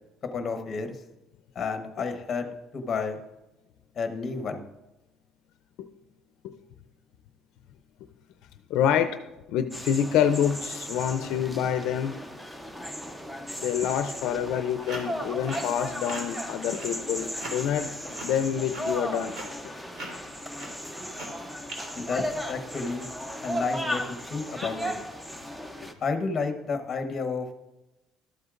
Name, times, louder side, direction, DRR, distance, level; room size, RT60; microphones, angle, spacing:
voice 1, 0.3-0.9 1.5-3.2 4.0-4.6 21.9-23.1 23.4-24.9 26.0-27.5, left 4 dB, 30° left, 7 dB, 1.0 m, -31 dB
voice 2, 8.7-9.2 9.5-12.2 13.6-17.9 18.2-19.3, left 9 dB, 75° left, 8 dB, 0.4 m, -27 dB
sound 1, 9.7-25.9, equal, 5° right, 0.6 m, -36 dB
sound 2, 14.3-22.9, right 1 dB, 55° right, 3.0 m, -42 dB
12.5 x 8.0 x 2.5 m, 0.98 s
cardioid pair, 140°, 0 cm